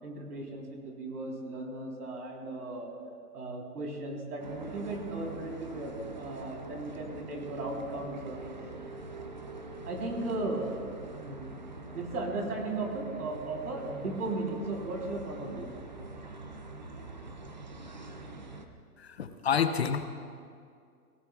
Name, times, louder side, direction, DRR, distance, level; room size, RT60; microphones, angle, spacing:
voice 1, 0.0-2.9 3.3-8.4 9.9-10.7 11.1-11.6 11.9-15.7, right 2 dB, 90° right, 0 dB, 3.7 m, -36 dB
sound 1, 4.4-18.7, right 2 dB, 30° right, 0.4 m, -44 dB
voice 2, 19.0-20.1, left 7 dB, 45° left, 9 dB, 0.6 m, -28 dB
19.5 x 17.0 x 2.4 m, 2.3 s
hypercardioid pair, 175°, 45 cm